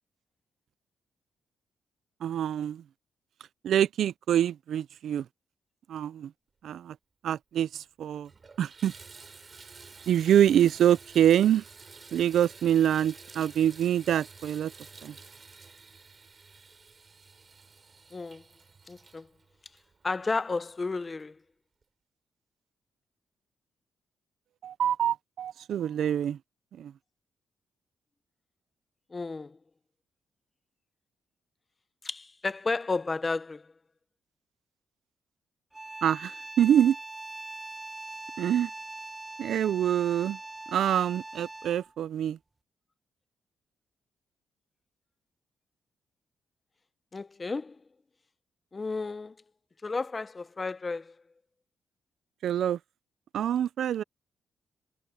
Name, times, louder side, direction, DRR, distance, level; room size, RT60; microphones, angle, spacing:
voice 1, 2.2-2.8 3.6-5.3 5.9-6.3 6.6-7.0 7.2-8.3 8.6-8.9 10.1-11.6 12.1-14.7 15.0-15.1 24.6-26.4 26.8-26.9 36.0-37.0 38.4-38.7 39.4-40.4 40.7-42.4 52.4-52.8 53.3-54.0, right 10 dB, 75° right, 0.4 m, -25 dB
Water tap faucet / Bathtub (filling or washing), 7.6-7.7 8.1-20.5 21.2-21.3 21.8-21.9, right 4 dB, 35° right, 6.5 m, -51 dB
voice 2, 18.1-18.4 18.9-19.3 20.0-21.4 29.1-29.6 32.0-33.6 47.1-47.8 48.7-49.3 49.8-51.1, left 3 dB, 25° left, 0.8 m, -32 dB
sound 1, 35.7-41.9, right 2 dB, 15° right, 0.9 m, -42 dB
cardioid pair, 105°, 0 cm